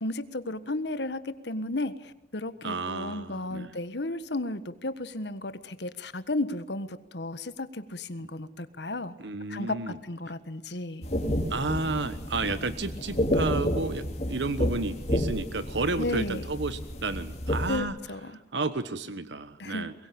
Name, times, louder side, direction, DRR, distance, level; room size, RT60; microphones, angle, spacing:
voice 1, 0.0-9.2 9.5-11.1 16.0-16.4 17.7-18.4 19.6-19.9, left 2 dB, 70° left, 12 dB, 1.5 m, -34 dB
voice 2, 2.6-3.7 9.2-10.0 11.5-18.0 18.5-19.9, right 3 dB, 80° right, 12 dB, 1.2 m, -32 dB
sound 1, 11.0-17.8, equal, 35° left, 3.3 m, -30 dB
23.5 x 21.5 x 8.8 m, 0.84 s
head